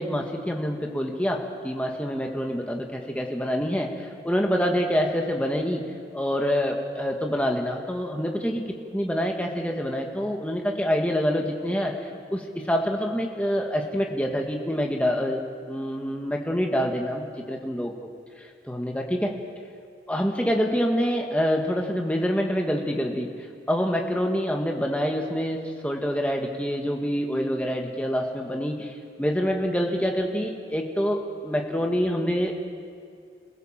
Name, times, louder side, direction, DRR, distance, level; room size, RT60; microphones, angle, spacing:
voice 1, 0.0-5.8 6.1-15.4 15.7-17.9 18.7-19.4 20.1-23.3 23.7-32.5, equal, 5° left, 1 dB, 1.8 m, -26 dB
28.0 x 16.5 x 7.5 m, 2.2 s
head